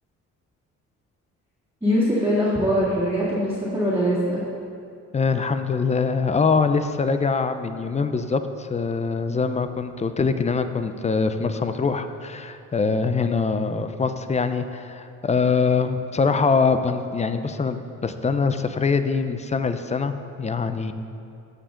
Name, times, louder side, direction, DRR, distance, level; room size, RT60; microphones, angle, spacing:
voice 1, 1.8-4.4, equal, 10° right, -11 dB, 2.1 m, -22 dB
voice 2, 5.1-20.1 20.4-20.9, left 4 dB, 25° left, 9 dB, 0.5 m, -23 dB
14.5 x 5.0 x 3.8 m, 2.5 s
cardioid pair, 90°, 30 cm